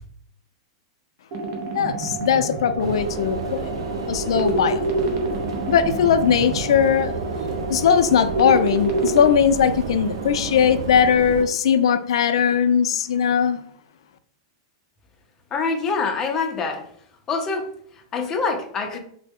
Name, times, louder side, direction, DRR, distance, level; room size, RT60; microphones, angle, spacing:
sound 1, 1.3-9.3, right 2 dB, 40° right, 0.6 m, -28 dB
voice 1, 1.7-3.7 4.1-4.9 5.7-13.6, left 7 dB, 85° left, 9 dB, 0.3 m, -19 dB
sound 2, 2.8-11.4, right 4 dB, 90° right, 0.5 m, -31 dB
voice 2, 15.5-16.8 17.3-17.7 18.1-19.0, left 4 dB, 15° left, 3 dB, 0.4 m, -25 dB
3.1 x 2.0 x 3.5 m, 0.63 s
supercardioid pair, 165°, 3 cm